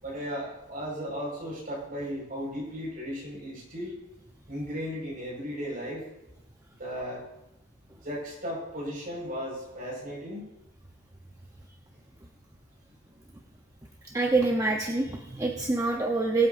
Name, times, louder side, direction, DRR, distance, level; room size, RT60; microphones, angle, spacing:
voice 1, 0.0-4.0 4.5-6.1 6.8-7.2 8.0-10.5, equal, 45° right, -3 dB, 5.4 m, -35 dB
voice 2, 14.1-16.5, right 3 dB, 15° right, 0 dB, 0.9 m, -26 dB
21.5 x 8.8 x 2.7 m, 0.88 s
head